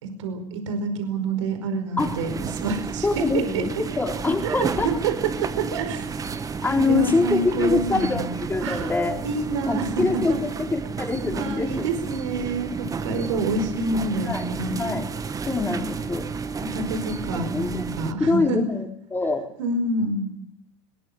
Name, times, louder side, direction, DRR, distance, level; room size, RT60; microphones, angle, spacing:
voice 1, 0.0-3.6 4.4-6.1 6.8-8.2 8.6-8.9 9.2-10.4 11.3-14.8 15.7-15.9 16.6-18.6 19.6-20.3, right 3 dB, 80° right, 7 dB, 4.8 m, -27 dB
sound 1, 2.0-18.1, right 5 dB, 20° right, 1.4 m, -32 dB
voice 2, 3.0-3.7 4.0-4.9 6.6-9.2 9.7-11.9 13.1-13.3 14.2-14.5 14.8-15.0 15.5-16.3 17.3-17.8 18.2-19.5, left 3 dB, 15° left, 3 dB, 4.4 m, -24 dB
21.5 x 20.0 x 8.2 m, 0.76 s
hypercardioid pair, 105°, 15 cm